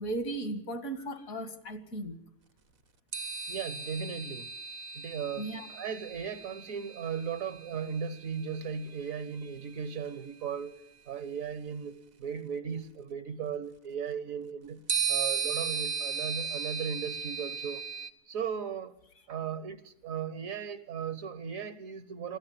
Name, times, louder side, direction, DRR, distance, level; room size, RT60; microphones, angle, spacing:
voice 1, 0.0-2.2 5.4-5.7, right 1 dB, 65° left, 2.3 m, -36 dB
sound 1, 3.1-8.8 10.0-10.1 14.9-18.1, right 6 dB, 45° right, 1.0 m, -36 dB
voice 2, 3.5-4.5 4.9-10.8 11.1-14.8 15.1-17.8 18.3-19.0 19.3-22.4, right 7 dB, 65° right, 1.4 m, -37 dB
21.5 x 14.0 x 9.5 m
omnidirectional pair, 1.6 m